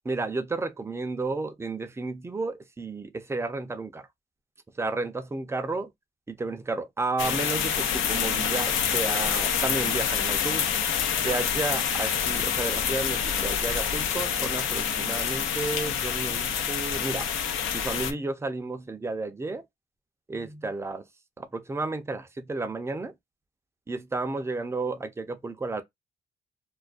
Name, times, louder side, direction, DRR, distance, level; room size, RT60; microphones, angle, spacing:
voice 1, 0.0-4.1 4.8-5.9 6.3-10.7 11.2-17.3 17.7-19.6 20.3-21.0 21.4-23.1 23.9-25.8, right 3 dB, 15° right, 0.5 m, -32 dB
sound 1, 7.2-18.1, left 8 dB, 80° left, 0.6 m, -27 dB
2.3 x 2.2 x 2.4 m
cardioid pair, 90°, 20 cm